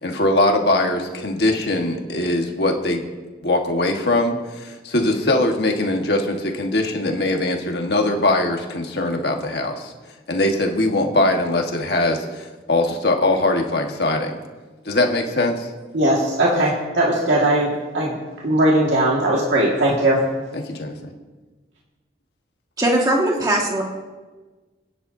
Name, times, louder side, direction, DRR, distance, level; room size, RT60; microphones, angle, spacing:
voice 1, 0.0-3.0 3.4-9.9 10.3-14.3 14.8-15.7 20.5-20.9, left 2 dB, 60° left, 3 dB, 1.5 m, -21 dB
voice 2, 15.9-18.2 18.4-20.2, right 1 dB, 85° right, -4 dB, 1.9 m, -19 dB
voice 3, 22.8-23.8, right 1 dB, 20° right, 0 dB, 1.7 m, -19 dB
25.5 x 10.0 x 2.7 m, 1.3 s
head